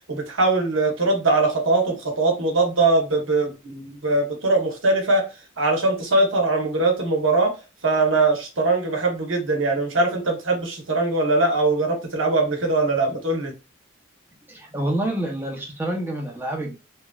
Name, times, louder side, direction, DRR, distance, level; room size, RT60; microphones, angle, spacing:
voice 1, 0.1-5.2 5.6-7.5 7.8-13.5, right 2 dB, 75° right, 0.9 m, -21 dB
voice 2, 14.5-16.8, right 1 dB, 10° right, 0.6 m, -27 dB
3.0 x 2.4 x 2.3 m
head